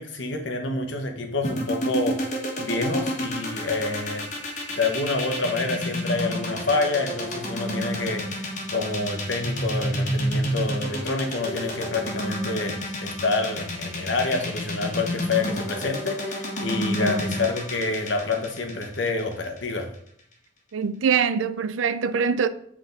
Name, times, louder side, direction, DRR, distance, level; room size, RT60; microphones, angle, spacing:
voice 1, 0.0-4.3 4.7-19.9, left 3 dB, 75° left, 1.0 m, -28 dB
sound 1, 1.4-19.6, equal, 40° left, 1.3 m, -29 dB
voice 2, 17.0-17.4 20.7-22.5, right 6 dB, 90° right, 0.4 m, -24 dB
7.8 x 3.6 x 3.9 m
head